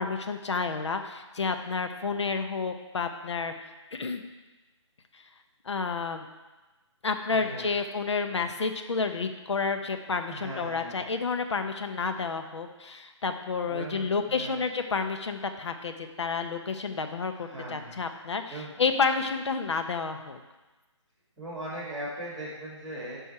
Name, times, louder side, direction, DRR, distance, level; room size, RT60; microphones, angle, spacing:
voice 1, 0.0-3.5 3.9-4.2 5.1-5.2 5.6-6.3 7.0-18.5 18.8-20.4, left 4 dB, 65° left, 7 dB, 1.0 m, -30 dB
voice 2, 7.3-7.7 9.8-9.9 10.3-11.0 13.7-14.6 17.3-17.9 18.5-18.8 21.4-23.2, right 1 dB, ahead, -15 dB, 2.8 m, -39 dB
10.5 x 5.5 x 4.3 m, 1.2 s
hypercardioid pair, 165°, 16 cm